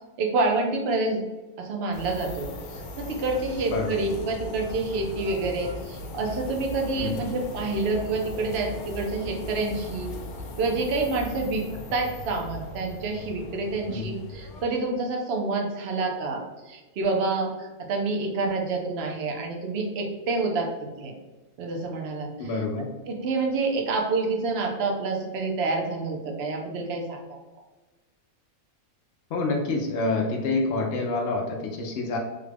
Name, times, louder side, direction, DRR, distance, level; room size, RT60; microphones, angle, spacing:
voice 1, 0.2-1.2 1.6-10.1 10.6-11.7 11.9-20.7 21.0-21.1 21.6-22.5 23.1-27.4, right 3 dB, 60° right, 2 dB, 0.8 m, -28 dB
sound 1, 1.9-14.6, left 2 dB, 80° left, 1.1 m, -38 dB
voice 2, 3.7-4.1 7.0-7.2 13.9-14.1 22.4-22.9 29.3-32.2, left 3 dB, 65° left, 0 dB, 0.6 m, -27 dB
3.5 x 2.3 x 3.3 m, 1.2 s
omnidirectional pair, 1.5 m